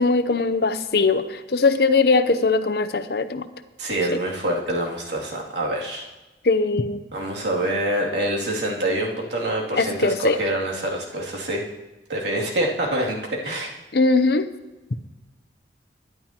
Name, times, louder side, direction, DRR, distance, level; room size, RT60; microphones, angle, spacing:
voice 1, 0.0-3.5 6.4-7.0 9.8-10.4 13.9-14.5, left 3 dB, 60° left, 9 dB, 0.7 m, -20 dB
voice 2, 3.8-6.1 7.1-11.6 12.1-13.7, right 1 dB, 80° right, -2 dB, 2.6 m, -26 dB
22.0 x 11.0 x 2.9 m, 1.1 s
head